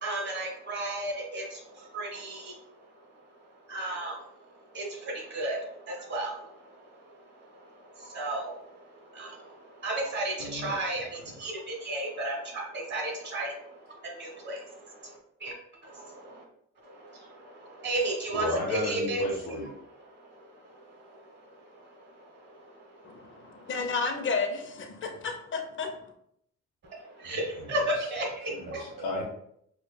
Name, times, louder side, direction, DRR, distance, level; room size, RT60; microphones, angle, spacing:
voice 1, 0.0-2.6 3.7-4.2 4.7-6.4 7.9-8.8 9.1-15.5 15.8-16.4 16.8-19.2 20.7-20.8 22.4-22.6 27.0-29.0, right 1 dB, 35° right, 0 dB, 1.3 m, -34 dB
voice 2, 10.4-10.7 18.3-19.7 27.2-27.8 28.5-29.2, left 2 dB, 85° left, -3 dB, 0.9 m, -34 dB
voice 3, 23.0-26.0, left 4 dB, 40° left, 4 dB, 0.7 m, -32 dB
4.9 x 2.4 x 2.2 m, 0.71 s
cardioid pair, 90°, 30 cm